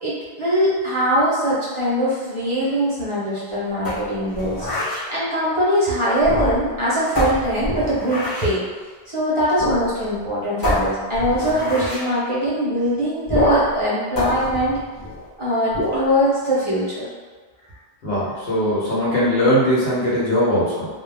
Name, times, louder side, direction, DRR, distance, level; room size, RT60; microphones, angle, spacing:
voice 1, 0.0-4.7 5.1-8.6 9.1-14.8 15.4-17.1, equal, 35° right, -9 dB, 0.6 m, -22 dB
sound 1, 3.8-5.1 6.2-6.8 7.2-8.6 9.6-9.9 10.1-10.2 10.6-12.1 13.3-13.8 14.2-15.3 15.7-16.1, left 1 dB, 25° left, 0.7 m, -24 dB
voice 2, 18.0-20.9, equal, 80° left, -7 dB, 1.1 m, -20 dB
2.3 x 2.1 x 3.2 m, 1.5 s
omnidirectional pair, 1.0 m